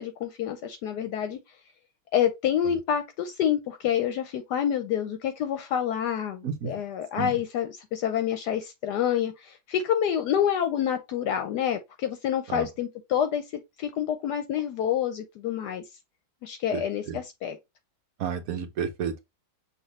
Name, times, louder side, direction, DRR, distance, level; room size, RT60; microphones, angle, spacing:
voice 1, 0.0-1.4 2.1-13.4 13.8-15.8 16.4-17.6, left 9 dB, 70° left, 1.1 m, -27 dB
voice 2, 16.7-17.2 18.2-19.3, right 7 dB, 60° right, 1.1 m, -32 dB
5.9 x 2.8 x 3.1 m
omnidirectional pair, 2.0 m